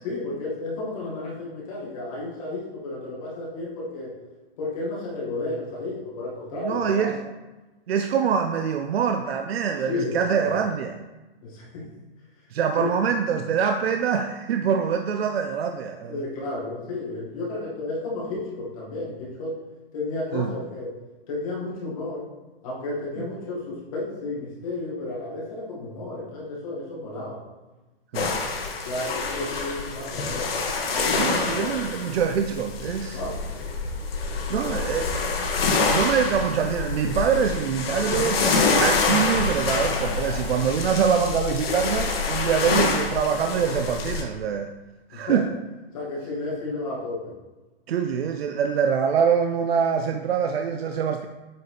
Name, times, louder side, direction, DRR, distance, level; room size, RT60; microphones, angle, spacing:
voice 1, 0.0-4.1 4.6-7.1 9.9-10.5 11.4-11.9 12.8-12.9 16.1-19.6 19.9-22.3 22.6-27.4 28.8-30.5 30.9-31.7 33.1-33.4 34.6-35.0 45.1-45.4 45.9-47.3, left 2 dB, 35° left, -5 dB, 1.9 m, -32 dB
voice 2, 6.6-7.2 7.9-11.0 12.5-16.2 20.3-20.5 28.1-28.4 31.2-33.2 34.5-35.1 35.9-44.7 45.1-45.5 47.9-51.3, right 7 dB, 80° right, 6 dB, 0.6 m, -24 dB
sound 1, 28.1-44.2, left 4 dB, 70° left, 1.4 m, -26 dB
8.3 x 4.1 x 3.3 m, 1.1 s
hypercardioid pair, 175°, 30 cm